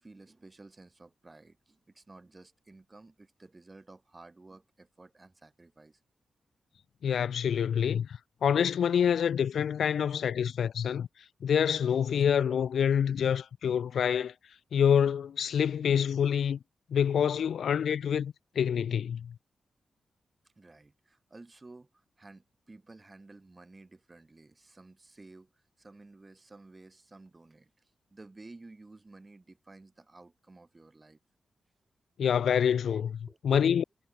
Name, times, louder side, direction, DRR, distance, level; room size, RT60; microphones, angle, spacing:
voice 1, 0.0-6.0 20.4-31.2 32.4-33.0 33.3-33.7, right 2 dB, 25° right, 5.3 m, -52 dB
voice 2, 7.0-11.1 11.4-14.3 14.7-16.6 16.9-19.3 32.2-33.1 33.4-33.8, left 8 dB, 85° left, 0.5 m, -27 dB
cardioid pair, 95°, 0 cm